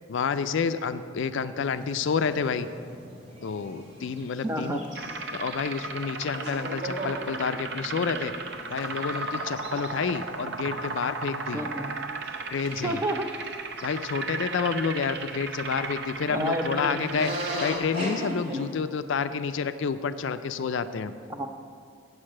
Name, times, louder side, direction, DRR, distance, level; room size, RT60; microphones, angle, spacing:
voice 1, 0.1-2.7 3.4-4.8 5.3-8.3 8.7-11.6 12.5-13.0 13.8-17.3 17.6-21.1, left 5 dB, 60° left, 11 dB, 0.4 m, -29 dB
sound 1, 1.6-12.0 12.3-12.4 12.5-15.5 16.9-18.7, equal, 35° right, 1.9 m, -39 dB
voice 2, 4.4-4.9 11.5-12.0 12.8-13.3 16.3-17.1 21.3-21.5, equal, 15° right, 5 dB, 0.5 m, -30 dB
sound 2, 5.0-17.8, right 3 dB, 55° right, 0.6 m, -35 dB
8.6 x 6.5 x 7.5 m, 2.1 s
head